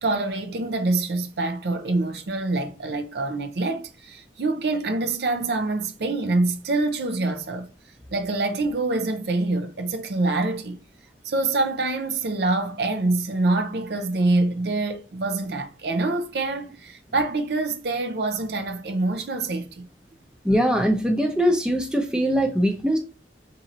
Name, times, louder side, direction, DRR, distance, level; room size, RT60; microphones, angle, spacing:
voice 1, 0.0-7.7 8.1-10.8 11.2-19.9, right 2 dB, 65° right, 0.6 m, -25 dB
voice 2, 20.4-23.0, equal, 5° right, 0.6 m, -21 dB
4.0 x 2.8 x 3.8 m
head